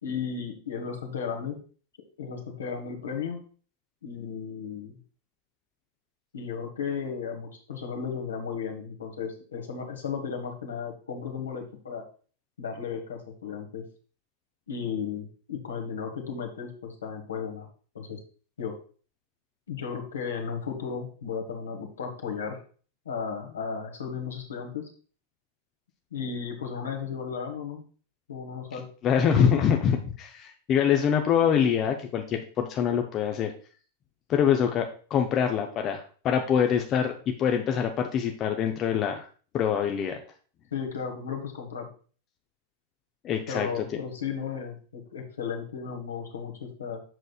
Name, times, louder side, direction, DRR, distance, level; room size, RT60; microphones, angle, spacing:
voice 1, 0.0-1.6 2.2-3.4 4.0-5.0 6.3-12.0 12.6-13.8 14.7-17.7 17.9-18.2 18.6-18.7 19.7-22.6 23.0-24.9 26.1-27.8 28.3-28.9 40.7-41.9 43.5-47.0, left 6 dB, 70° left, 3 dB, 1.4 m, -34 dB
voice 2, 29.0-33.5 34.3-37.1 37.4-39.3 39.5-40.2 43.2-43.7, left 8 dB, 30° left, 4 dB, 0.6 m, -24 dB
7.7 x 6.3 x 2.4 m, 0.41 s
figure-of-eight pair, 90°, 0 cm